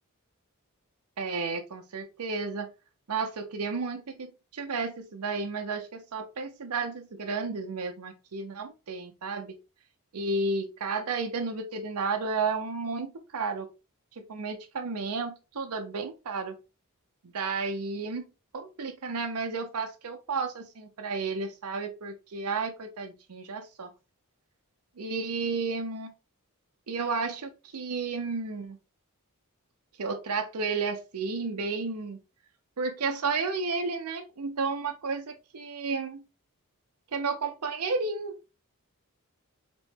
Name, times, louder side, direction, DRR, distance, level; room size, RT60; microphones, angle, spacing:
voice 1, 1.2-2.7 3.1-9.6 10.1-13.7 14.1-16.6 17.2-18.2 18.5-23.9 25.0-26.1 26.9-28.8 30.0-32.2 32.8-36.2 37.1-38.4, right 4 dB, 85° right, 4 dB, 0.7 m, -32 dB
4.1 x 3.0 x 3.5 m, 0.29 s
head